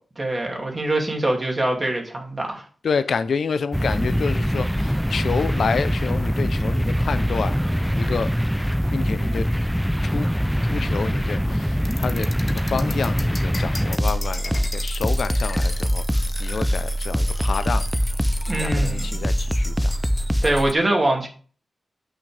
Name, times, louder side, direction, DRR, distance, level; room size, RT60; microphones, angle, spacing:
voice 1, 0.2-2.6 18.5-19.2 20.4-21.3, right 1 dB, 25° right, 2.5 m, -23 dB
voice 2, 2.8-8.3 8.9-9.5 10.1-10.3 10.7-17.8 18.6-20.0, left 5 dB, 80° left, 0.6 m, -28 dB
sound 1, 3.7-20.7, equal, ahead, 0.4 m, -23 dB
sound 2, 11.8-18.7, left 2 dB, 30° left, 1.1 m, -37 dB
8.8 x 6.0 x 3.4 m
wide cardioid pair, 120°, 0 cm